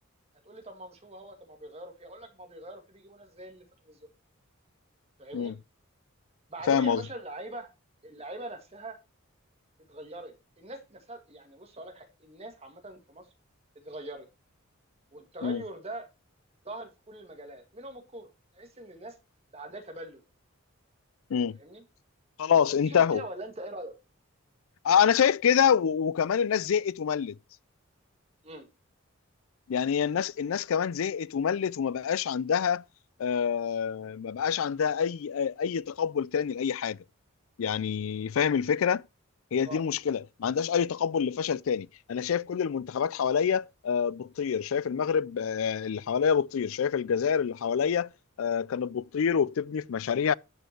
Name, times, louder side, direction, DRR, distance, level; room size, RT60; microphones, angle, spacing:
voice 1, 0.5-4.0 5.2-5.5 6.5-7.7 8.0-9.0 9.8-13.3 13.8-14.3 15.1-16.1 16.6-19.1 19.5-20.2 21.6-21.8 22.7-23.9 28.4-28.7 39.6-39.8, right 1 dB, 30° right, 2.0 m, -43 dB
voice 2, 6.7-7.0 15.4-15.6 21.3-21.6 22.4-23.2 24.8-27.4 29.7-32.8 33.2-37.0 37.6-39.0 39.5-48.1 48.4-50.3, left 7 dB, 75° left, 0.4 m, -26 dB
12.5 x 5.5 x 4.4 m
head